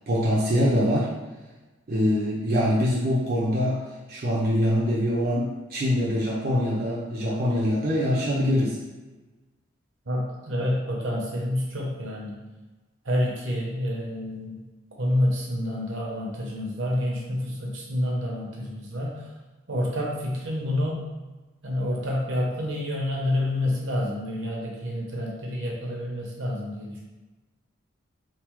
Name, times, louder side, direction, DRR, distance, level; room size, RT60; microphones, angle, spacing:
voice 1, 0.1-1.1 1.9-3.8 4.1-8.8, equal, 45° right, -6 dB, 0.5 m, -24 dB
voice 2, 10.1-12.4 13.0-14.7 15.0-19.3 19.7-21.0 21.6-27.0, left 1 dB, 75° right, -3 dB, 0.8 m, -28 dB
3.2 x 2.0 x 3.0 m, 1.2 s
head